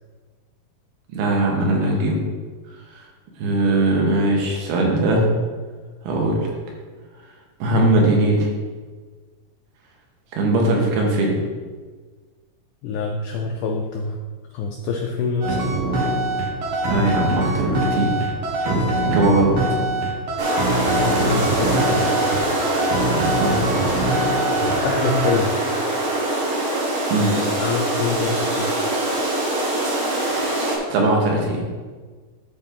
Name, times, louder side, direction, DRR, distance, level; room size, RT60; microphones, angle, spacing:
voice 1, 1.1-2.2 2.9-3.0 3.4-5.3 6.0-6.5 7.6-8.5 10.3-11.4 16.8-18.2 18.6-19.5 23.1-23.5 27.1-27.4 30.3-30.6 30.9-31.6, right 2 dB, 90° right, -1 dB, 3.3 m, -20 dB
voice 2, 12.8-14.2 14.5-15.7 19.3-19.4 21.0-22.1 24.5-25.5 27.6-28.7, left 4 dB, 85° left, 2 dB, 1.8 m, -25 dB
sound 1, 15.4-24.8 25.0-25.3, right 1 dB, 65° right, 2.8 m, -23 dB
sound 2, 20.4-30.8, right 1 dB, 45° right, 2.0 m, -23 dB
12.5 x 4.3 x 3.7 m, 1.4 s
omnidirectional pair, 4.3 m